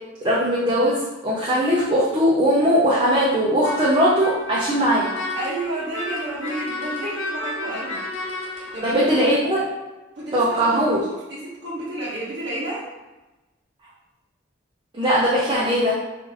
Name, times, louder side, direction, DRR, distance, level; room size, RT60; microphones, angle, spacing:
voice 1, 0.2-5.1 8.8-9.7 10.3-11.0 14.9-15.9, equal, 25° right, -8 dB, 0.5 m, -19 dB
sound 1, 3.6-8.9, left 2 dB, 70° left, 0.6 m, -32 dB
voice 2, 5.3-8.0 8.5-9.0 10.1-10.8 11.1-12.8, right 1 dB, 60° right, -8 dB, 0.8 m, -31 dB
3.8 x 2.4 x 3.2 m, 1.1 s
head